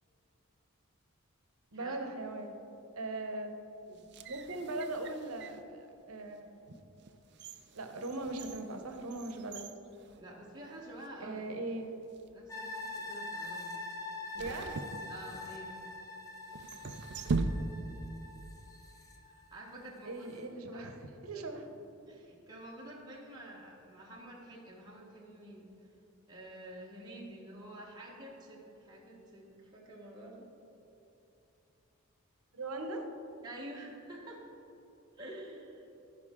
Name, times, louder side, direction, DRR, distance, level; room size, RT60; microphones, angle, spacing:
voice 1, 1.7-2.5 2.9-3.5 4.3-6.6 7.7-9.7 11.2-11.9 14.3-14.7 20.0-21.0 21.2-21.6 32.5-33.1, right 2 dB, 75° right, 5 dB, 0.9 m, -39 dB
sound 1, 3.9-5.7 6.3-6.4 7.0-10.7 11.0-11.1 12.0-12.3 14.3-15.7 16.5-18.1 18.3-18.4, right 3 dB, 50° right, 0.4 m, -40 dB
voice 2, 10.2-11.4 12.3-13.8 14.3-14.5 15.1-15.8 19.2-20.3 20.7-20.9 21.2-21.8 22.1-25.7 26.3-30.5 33.4-34.5 35.2-35.9, right 1 dB, 20° right, -4 dB, 1.2 m, -49 dB
sound 2, 12.5-19.8 20.2-20.3, left 2 dB, 15° left, 0.7 m, -44 dB
15.0 x 5.2 x 3.7 m, 2.9 s
head